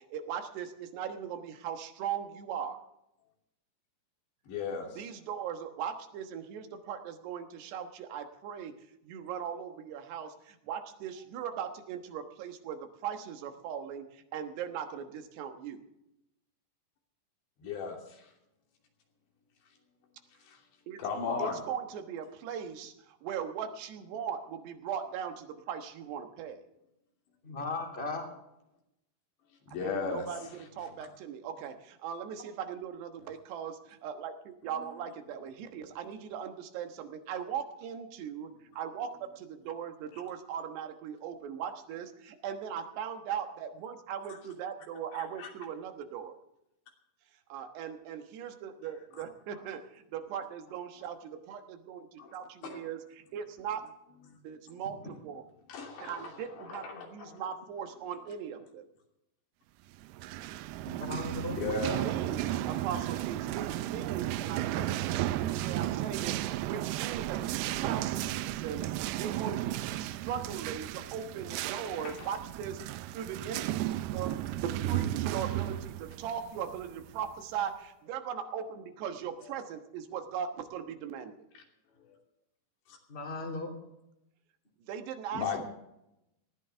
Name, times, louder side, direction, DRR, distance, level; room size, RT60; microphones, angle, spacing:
voice 1, 0.0-2.8 5.0-15.8 20.9-21.0 21.4-26.7 29.8-46.4 47.3-53.9 54.4-55.5 56.0-58.9 61.6-72.8 73.1-73.7 74.1-74.3 74.6-81.3 84.8-85.6, right 8 dB, 75° right, 7 dB, 3.3 m, -39 dB
voice 2, 4.5-5.0 17.6-18.3 20.4-20.6 21.0-21.6 29.7-30.3 34.8-34.9 44.3-44.4 45.4-45.5 52.2-52.3 52.6-52.8 54.3-54.4 54.7-54.8 55.7-57.5 61.5-62.1 72.0-72.4 79.4-79.5 82.0-82.2 82.9-83.0 85.3-85.6, left 5 dB, 75° left, 0 dB, 5.0 m, -36 dB
voice 3, 27.4-28.2 55.0-55.1 60.8-61.6 83.1-83.7, left 3 dB, 15° left, 1 dB, 2.7 m, -36 dB
sound 1, 60.0-77.4, right 14 dB, 90° right, 2.2 m, -34 dB
19.5 x 14.5 x 3.4 m, 0.84 s
omnidirectional pair, 5.1 m